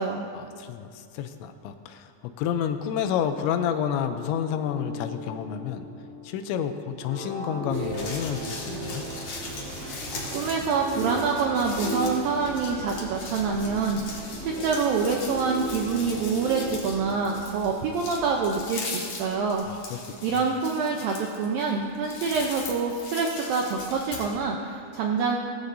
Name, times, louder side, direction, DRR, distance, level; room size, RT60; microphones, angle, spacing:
voice 1, 0.3-5.9 6.2-9.0 19.7-20.0 20.3-20.4, left 8 dB, 90° left, 8 dB, 3.0 m, -30 dB
sound 1, 3.3-17.9, right 1 dB, 10° left, 0.8 m, -38 dB
sound 2, 7.7-24.3, left 3 dB, 60° left, 3.3 m, -39 dB
sound 3, 7.7-18.5, right 2 dB, 60° right, 3.6 m, -43 dB
voice 2, 10.3-19.7 20.2-25.4, right 5 dB, 85° right, 0 dB, 2.0 m, -26 dB
18.5 x 14.5 x 2.7 m, 2.4 s
omnidirectional pair, 5.1 m